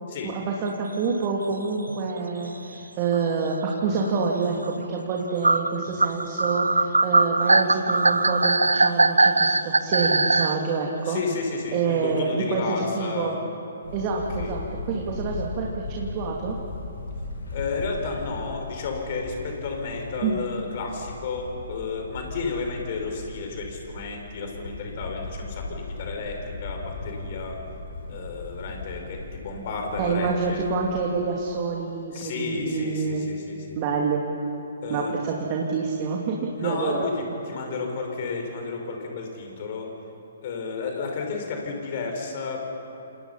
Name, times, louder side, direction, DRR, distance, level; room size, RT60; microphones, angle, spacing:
voice 1, 0.2-11.2 11.7-13.4 13.9-16.6 20.2-20.4 30.0-33.3 33.8-34.2 34.9-37.1, right 5 dB, 30° right, -1 dB, 2.7 m, -27 dB
sound 1, 1.5-1.6 1.9-2.1 2.8-2.9 3.1-3.2 3.9-4.1 4.6-4.7 5.4-10.6, right 2 dB, 80° right, 0.9 m, -20 dB
voice 2, 11.0-13.4 14.4-14.6 17.5-27.6 28.1-30.6 32.1-33.8 34.8-35.1 36.5-39.9 40.4-42.7, left 4 dB, 45° left, 2 dB, 5.4 m, -32 dB
sound 2, 13.8-31.0, left 2 dB, 75° left, 7.6 m, -37 dB
29.0 x 27.5 x 5.8 m, 2.9 s
figure-of-eight pair, 125°, 0 cm